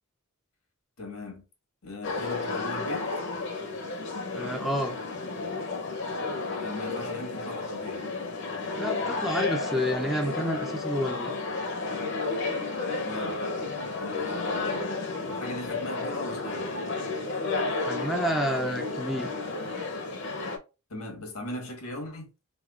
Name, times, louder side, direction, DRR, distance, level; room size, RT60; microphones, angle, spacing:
voice 1, 1.0-1.5 1.8-3.1 6.6-8.0 12.9-13.4 14.0-14.9 15.2-16.7 20.9-22.3, left 1 dB, 90° left, 1.4 m, -39 dB
sound 1, 2.0-20.6, left 3 dB, 55° left, 0.6 m, -32 dB
voice 2, 4.3-5.0 8.8-11.3 17.9-19.3, equal, ahead, 0.3 m, -29 dB
3.4 x 3.3 x 2.3 m
head